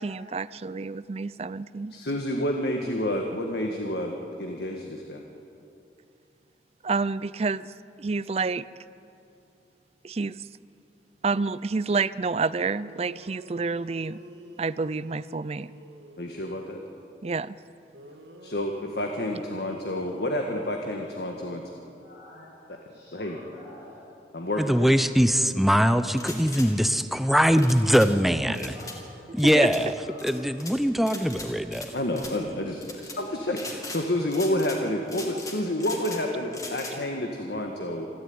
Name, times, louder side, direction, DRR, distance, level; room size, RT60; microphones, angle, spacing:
voice 1, 0.0-1.9 6.8-7.7 8.0-8.7 10.0-10.5 11.2-14.2 14.6-15.7 17.2-17.6 29.4-29.7, right 4 dB, 35° right, 17 dB, 0.5 m, -28 dB
voice 2, 1.9-5.2 16.2-16.8 18.4-21.6 23.1-23.4 24.3-24.9 31.9-38.1, left 1 dB, 65° left, 2 dB, 1.7 m, -29 dB
sound 1, 12.5-16.7 17.9-22.0, right 1 dB, 85° right, 2.2 m, -49 dB
voice 3, 22.0-22.5 22.9-24.1 27.4-30.5 35.9-36.0, left 1 dB, 80° left, -7 dB, 7.1 m, -48 dB
voice 4, 24.6-28.7 29.3-29.9 30.2-31.9, equal, ahead, 10 dB, 0.7 m, -22 dB
sound 2, 26.1-26.7 27.6-28.1 28.5-29.0 29.4-29.8 30.2-30.8 31.1-32.4 32.8-33.2 33.5-34.0 34.3-34.8 35.1-36.2 36.5-37.0, left 3 dB, 20° left, 2.7 m, -39 dB
27.5 x 12.5 x 9.6 m, 2.7 s
head